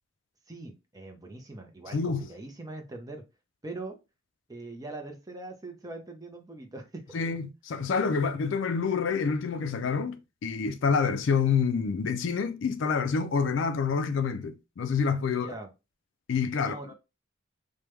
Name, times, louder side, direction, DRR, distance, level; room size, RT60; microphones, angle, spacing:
voice 1, 0.5-3.2 3.6-4.0 4.5-7.4 15.3-15.7 16.6-16.9, right 2 dB, 20° right, 0.6 m, -42 dB
voice 2, 1.9-2.2 7.1-15.5 16.3-16.8, left 5 dB, 60° left, 0.4 m, -27 dB
3.3 x 2.2 x 3.1 m
head